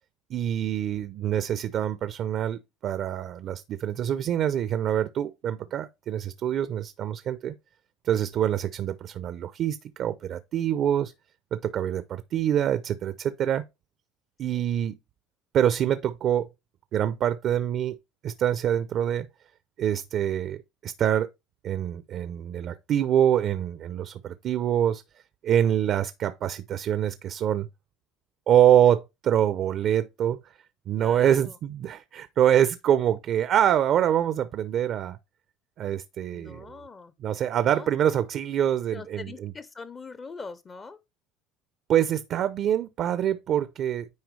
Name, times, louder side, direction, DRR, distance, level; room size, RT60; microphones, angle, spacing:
voice 1, 0.3-7.5 8.0-11.1 11.5-13.6 14.4-15.0 15.5-16.5 16.9-18.0 18.2-19.3 19.8-21.3 21.6-25.0 25.4-27.7 28.5-30.4 30.9-35.2 35.8-36.7 37.2-39.5 41.9-44.1, right 10 dB, 50° right, 0.5 m, -25 dB
voice 2, 31.0-31.6 36.3-37.1 37.6-38.1 38.9-41.0, left 4 dB, 25° left, 0.6 m, -43 dB
9.5 x 4.5 x 3.2 m
supercardioid pair, 120°, 0 cm